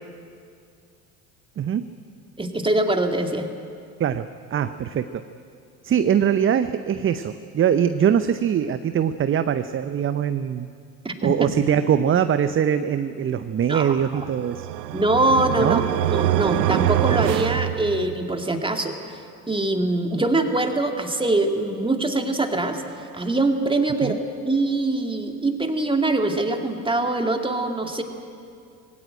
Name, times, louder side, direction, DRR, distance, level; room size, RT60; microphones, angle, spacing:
voice 1, 2.4-3.5 11.0-11.5 13.7-14.0 14.9-15.8 16.1-19.2 19.5-22.8 23.1-24.2 24.4-28.0, right 2 dB, 10° right, 5 dB, 2.2 m, -23 dB
voice 2, 4.0-5.2 5.8-10.7 11.2-14.7 15.6-15.8 24.0-24.2, right 8 dB, 25° right, 11 dB, 0.7 m, -22 dB
sound 1, 14.1-18.4, right 14 dB, 85° right, 0.6 m, -24 dB
19.0 x 17.0 x 9.0 m, 2.4 s
hypercardioid pair, 70°, 47 cm